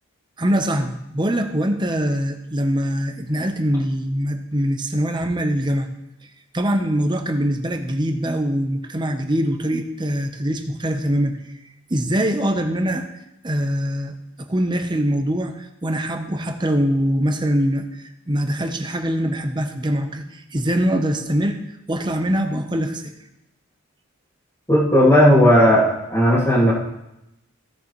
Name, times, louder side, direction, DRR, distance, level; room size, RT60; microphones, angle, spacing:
voice 1, 0.4-5.9 6.5-11.4 11.9-13.1 13.4-21.6 21.9-23.1, equal, 20° right, 6 dB, 0.7 m, -23 dB
voice 2, 24.7-26.7, equal, 15° left, -10 dB, 2.1 m, -15 dB
16.0 x 6.8 x 3.0 m, 0.86 s
head